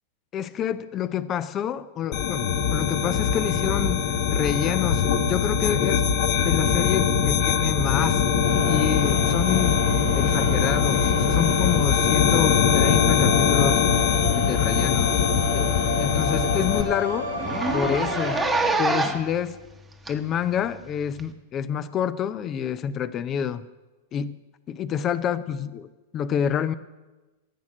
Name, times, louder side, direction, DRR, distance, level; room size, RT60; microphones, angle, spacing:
voice 1, 0.3-2.4 2.7-6.0 6.4-8.2 8.6-9.8 10.1-13.8 14.3-15.2 15.5-17.5 17.7-18.4 18.8-19.6 20.1-23.7 24.1-24.4 24.7-25.9 26.1-26.7, left 8 dB, 30° left, 15 dB, 0.6 m, -28 dB
sound 1, 2.1-16.8, left 7 dB, 45° left, 1.1 m, -22 dB
sound 2, 8.4-18.7, left 2 dB, 90° left, 2.1 m, -31 dB
Zipper (clothing), 14.7-14.9 15.3-15.4 15.7-15.8 16.2-16.3 16.5-16.7 17.4-19.3 20.1-20.2 21.2-21.3, right 3 dB, 10° right, 1.1 m, -26 dB
14.0 x 7.2 x 6.4 m, 1.1 s
figure-of-eight pair, 95°, 0 cm